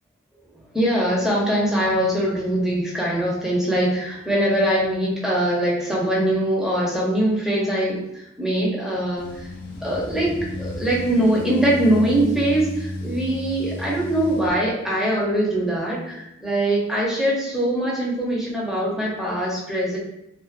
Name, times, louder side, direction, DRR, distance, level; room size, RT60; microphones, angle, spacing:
voice 1, 0.7-9.5 9.8-10.3 10.6-20.0, right 1 dB, 5° right, -5 dB, 0.5 m, -22 dB
sound 1, 9.2-14.5, left 1 dB, 45° left, 0.5 m, -33 dB
2.5 x 2.2 x 2.3 m, 0.84 s
head